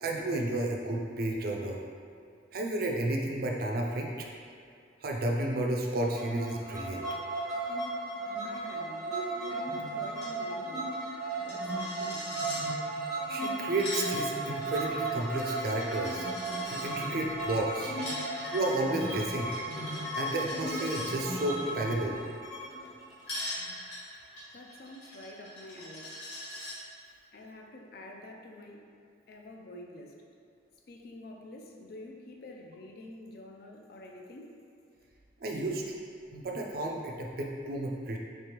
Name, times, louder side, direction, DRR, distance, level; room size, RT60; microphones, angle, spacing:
voice 1, 0.0-1.8 2.5-4.3 5.0-7.0 13.3-16.3 16.6-17.9 18.5-19.5 20.2-22.2 35.4-36.0 36.3-38.2, right 2 dB, 50° right, 0 dB, 0.4 m, -32 dB
sound 1, 6.2-23.9, right 2 dB, ahead, 0.7 m, -35 dB
voice 2, 8.4-9.2 9.5-11.0 11.4-12.3 24.5-26.1 27.3-28.9 29.3-30.2 30.9-34.6, left 1 dB, 50° left, 1 dB, 0.4 m, -47 dB
Coin (dropping), 10.1-10.3 10.6-10.7 10.9-12.6 13.5-16.8 17.8-21.1 23.3-26.7, left 1 dB, 70° left, 1.4 m, -42 dB
3.4 x 3.3 x 2.9 m, 2.4 s
head